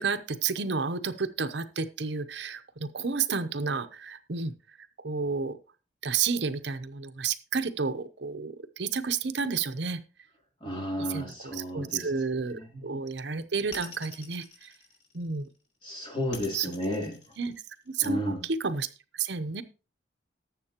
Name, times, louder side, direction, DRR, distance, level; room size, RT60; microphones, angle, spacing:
voice 1, 0.0-4.5 5.0-5.6 6.0-10.0 11.0-14.7 15.1-15.5 16.5-16.7 17.4-17.5 17.9-19.6, right 5 dB, 70° right, 10 dB, 0.7 m, -31 dB
voice 2, 10.6-12.0 12.5-13.0 15.8-17.2 18.0-18.4, equal, 25° left, 0 dB, 3.0 m, -33 dB
sound 1, 13.7-15.5 16.3-18.1, left 4 dB, 80° left, 4.5 m, -45 dB
18.5 x 7.4 x 2.9 m, 0.34 s
head